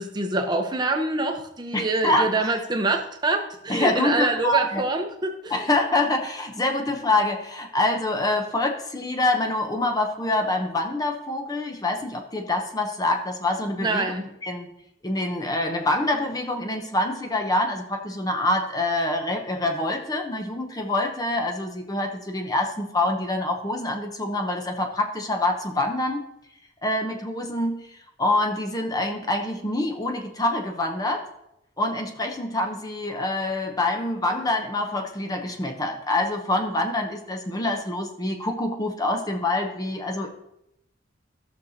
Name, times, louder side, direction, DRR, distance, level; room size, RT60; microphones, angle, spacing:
voice 1, 0.0-5.6 13.8-14.3, right 2 dB, 20° right, 4 dB, 0.8 m, -25 dB
voice 2, 1.7-2.3 3.7-4.8 5.5-14.1 14.4-14.7 15.0-26.2 26.8-27.9 28.2-31.2 31.8-40.3, left 2 dB, 20° left, 4 dB, 0.7 m, -26 dB
14.0 x 6.5 x 2.8 m, 0.81 s
head